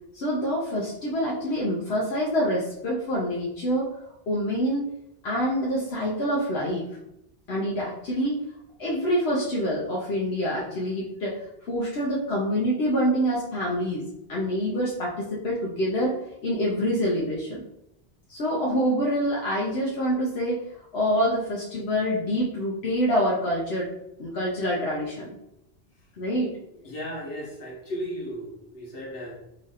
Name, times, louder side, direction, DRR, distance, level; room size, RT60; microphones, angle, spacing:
voice 1, 0.1-3.9 4.3-4.9 5.2-6.8 7.5-8.4 8.8-11.4 11.7-17.6 18.3-20.6 20.9-23.9 24.2-25.3 26.2-26.5, equal, 80° left, -4 dB, 1.0 m, -26 dB
voice 2, 26.8-29.3, equal, 65° left, -3 dB, 1.3 m, -35 dB
3.2 x 2.5 x 4.0 m, 0.82 s
omnidirectional pair, 1.0 m